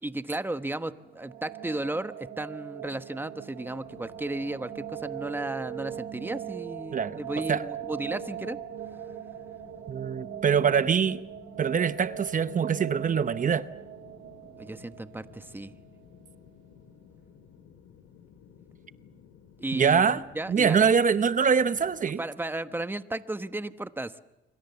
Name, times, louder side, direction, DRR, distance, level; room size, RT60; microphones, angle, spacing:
voice 1, 0.0-8.6 14.6-15.7 19.6-20.9 22.2-24.2, right 2 dB, 10° right, 11 dB, 1.2 m, -34 dB
sound 1, 0.9-15.9, right 9 dB, 85° right, 2.3 m, -40 dB
sound 2, 3.7-22.0, left 7 dB, 90° left, 2.5 m, -55 dB
voice 2, 9.9-11.2 11.6-13.7 19.7-20.2 20.5-22.2, right 6 dB, 40° right, 13 dB, 0.9 m, -24 dB
27.5 x 24.5 x 7.0 m, 0.97 s
cardioid pair, 90°, 20 cm